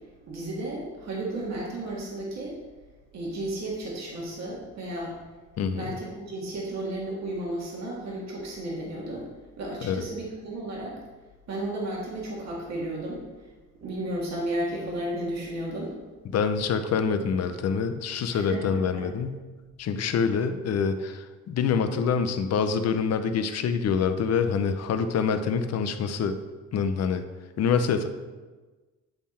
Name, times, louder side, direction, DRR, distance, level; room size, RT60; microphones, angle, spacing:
voice 1, 0.2-2.6 3.1-5.2 5.7-9.3 9.6-11.0 11.5-13.2 13.8-15.9 18.3-19.1, right 1 dB, 60° right, -4 dB, 1.9 m, -33 dB
voice 2, 5.6-5.9 9.8-10.0 16.3-19.4 19.8-26.4 26.7-27.2 27.6-28.1, left 6 dB, 55° left, 9 dB, 0.7 m, -26 dB
9.1 x 3.6 x 4.3 m, 1.3 s
cardioid pair, 90°, 30 cm